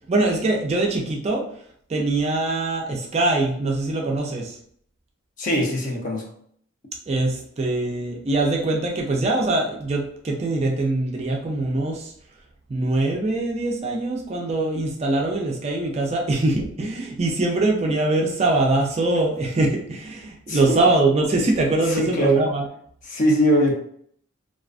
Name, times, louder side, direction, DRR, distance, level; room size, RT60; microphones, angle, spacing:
voice 1, 0.1-1.4 1.9-4.6 7.1-12.1 12.7-22.7, right 2 dB, 30° right, 0 dB, 0.3 m, -23 dB
voice 2, 5.4-6.2 20.5-20.8 21.8-22.4 23.0-23.7, equal, 40° left, 0 dB, 0.5 m, -21 dB
2.3 x 2.3 x 2.3 m, 0.63 s
head